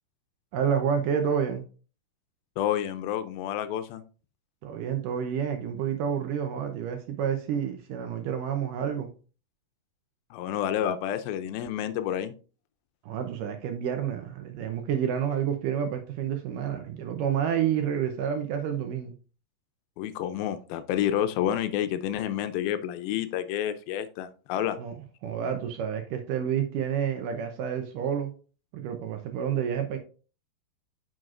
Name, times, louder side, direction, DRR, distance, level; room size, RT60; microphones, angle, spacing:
voice 1, 0.5-1.6 4.6-9.1 13.0-19.1 24.8-25.0 25.2-28.3 28.7-30.0, right 8 dB, 75° right, 2.1 m, -29 dB
voice 2, 2.6-4.0 10.3-12.3 20.0-24.8, left 10 dB, 80° left, 2.3 m, -29 dB
8.8 x 6.4 x 2.5 m
omnidirectional pair, 4.4 m